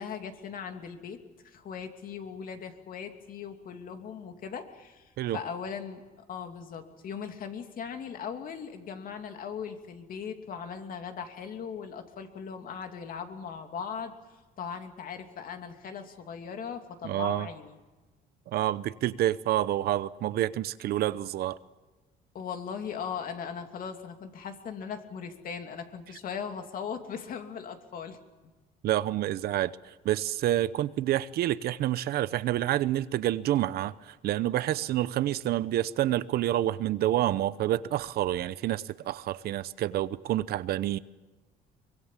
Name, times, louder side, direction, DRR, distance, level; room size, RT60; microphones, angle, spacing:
voice 1, 0.0-6.0 6.3-14.1 14.6-17.8 22.3-28.2, left 7 dB, 55° left, 2.7 m, -39 dB
voice 2, 17.0-17.5 18.5-21.6 28.8-41.0, right 13 dB, 70° right, 0.8 m, -28 dB
24.0 x 22.0 x 7.4 m
cardioid pair, 110°, 17 cm